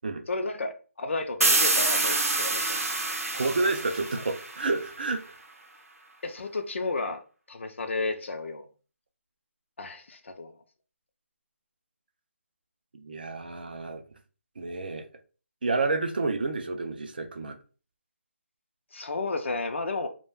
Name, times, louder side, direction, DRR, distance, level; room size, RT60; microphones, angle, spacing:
voice 1, 0.3-3.1 6.2-7.2 7.5-8.7 9.8-10.6 18.9-20.1, left 3 dB, 60° left, 0.4 m, -32 dB
sound 1, 1.4-5.0, right 2 dB, 85° right, 0.6 m, -26 dB
voice 2, 3.3-5.4 12.9-14.0 14.6-15.1 15.6-17.6, right 3 dB, 40° right, 0.3 m, -29 dB
2.3 x 2.1 x 3.2 m
figure-of-eight pair, 170°, 8 cm